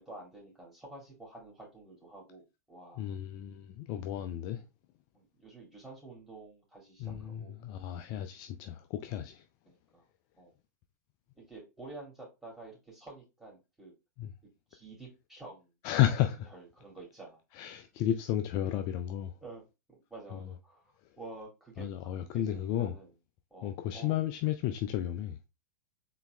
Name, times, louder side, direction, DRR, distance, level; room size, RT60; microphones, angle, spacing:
voice 1, 0.0-3.1 5.1-7.6 9.7-10.0 10.4-10.5 11.4-13.9 14.7-15.7 16.5-17.4 19.4-19.6 19.9-21.9 22.3-23.1 23.5-24.2, right 2 dB, 5° right, 2.6 m, -49 dB
voice 2, 3.0-4.6 7.0-9.4 14.2-14.3 15.8-16.5 17.5-19.3 20.3-20.5 21.8-22.9 23.6-25.4, left 11 dB, 40° left, 0.4 m, -32 dB
4.1 x 4.0 x 2.2 m
figure-of-eight pair, 100°, 10 cm